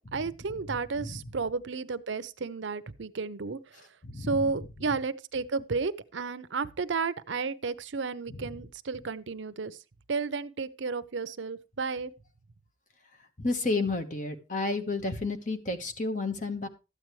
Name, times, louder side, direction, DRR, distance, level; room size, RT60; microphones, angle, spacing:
voice 1, 0.0-3.6 4.2-9.8 10.1-12.1, right 4 dB, 75° right, 0.6 m, -32 dB
voice 2, 4.0-4.5 8.3-8.4 13.4-16.7, left 3 dB, 40° left, 1.3 m, -31 dB
13.0 x 8.9 x 3.2 m
head